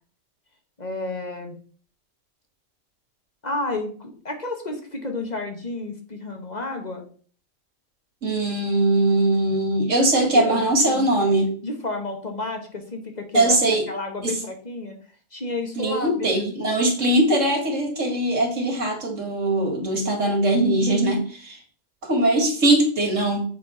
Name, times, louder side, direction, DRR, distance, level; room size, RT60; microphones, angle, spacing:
voice 1, 0.8-1.6 3.4-7.1 10.1-11.3 11.6-13.6 13.9-14.9 15.3-16.8, left 2 dB, 35° left, 3 dB, 1.4 m, -31 dB
voice 2, 8.2-11.5 13.3-13.8 14.2-14.3 15.8-21.6 22.1-23.4, right 1 dB, 90° right, 2 dB, 2.4 m, -21 dB
7.5 x 4.2 x 5.5 m, 0.43 s
omnidirectional pair, 1.3 m